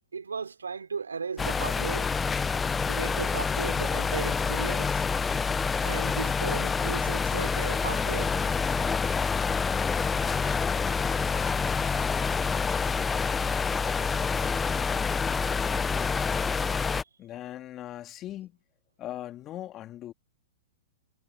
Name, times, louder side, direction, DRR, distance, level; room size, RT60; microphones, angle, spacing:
voice 1, 0.1-2.1 2.9-5.0 5.8-8.3, right 5 dB, 80° right, 3.4 m, -36 dB
sound 1, 1.4-17.0, left 5 dB, 15° left, 0.8 m, -27 dB
voice 2, 17.2-18.6 19.0-20.1, left 13 dB, 30° left, 3.0 m, -39 dB
figure-of-eight pair, 110°, 0 cm